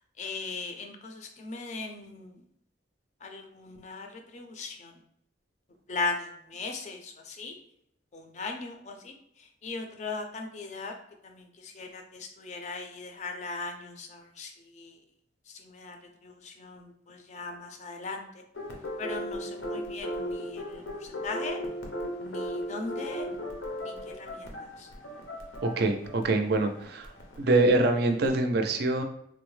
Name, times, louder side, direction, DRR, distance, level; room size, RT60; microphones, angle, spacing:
voice 1, 0.2-2.4 3.2-4.9 5.9-7.5 8.1-10.9 11.2-15.0 15.5-16.0 16.2-18.4 19.0-21.6 22.2-23.3 23.8-24.9, left 3 dB, 40° left, 4 dB, 0.4 m, -39 dB
sound 1, 18.5-28.4, equal, 90° left, 0.7 m, -37 dB
voice 2, 25.6-27.1 27.4-29.0, right 2 dB, 55° right, 6 dB, 0.4 m, -24 dB
3.6 x 2.0 x 3.1 m, 0.72 s
head